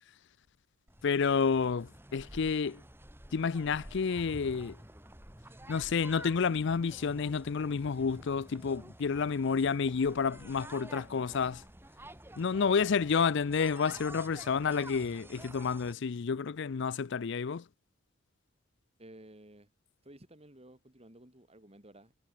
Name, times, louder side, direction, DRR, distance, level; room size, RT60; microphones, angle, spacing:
sound 1, 0.9-15.9, right 1 dB, 10° right, 3.8 m, -50 dB
voice 1, 1.0-2.8 3.3-4.8 5.7-11.6 12.4-17.6, left 5 dB, 60° left, 0.5 m, -30 dB
voice 2, 12.5-12.9 19.0-19.7 20.0-22.2, right 1 dB, 30° right, 3.7 m, -54 dB
head